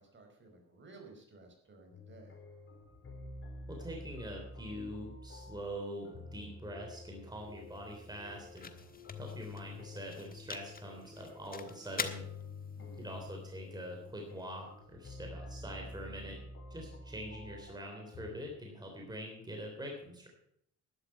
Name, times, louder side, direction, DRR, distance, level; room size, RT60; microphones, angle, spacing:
voice 1, 0.0-2.4 12.7-13.2, right 3 dB, 40° right, 3 dB, 4.7 m, -56 dB
sound 1, 1.9-18.3, left 2 dB, 45° left, 3.9 m, -49 dB
voice 2, 3.7-8.7 9.2-12.2 13.0-16.4 16.7-20.3, equal, 15° right, 1 dB, 3.4 m, -44 dB
sound 2, 7.0-15.1, left 5 dB, 30° left, 1.4 m, -47 dB
12.0 x 11.5 x 5.7 m, 0.71 s
cardioid pair, 90°, 30 cm